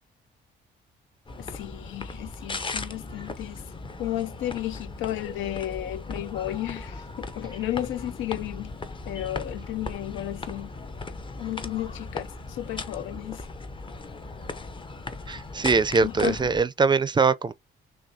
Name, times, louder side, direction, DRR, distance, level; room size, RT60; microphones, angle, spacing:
sound 1, 1.3-16.6, left 3 dB, 25° left, 0.6 m, -38 dB
voice 1, 1.4-3.6 4.0-8.7 9.1-10.7 11.4-13.5 16.0-16.4, left 13 dB, 85° left, 0.4 m, -33 dB
voice 2, 15.3-17.5, right 4 dB, 20° right, 0.4 m, -22 dB
6.1 x 2.3 x 2.7 m
cardioid pair, 90°, 20 cm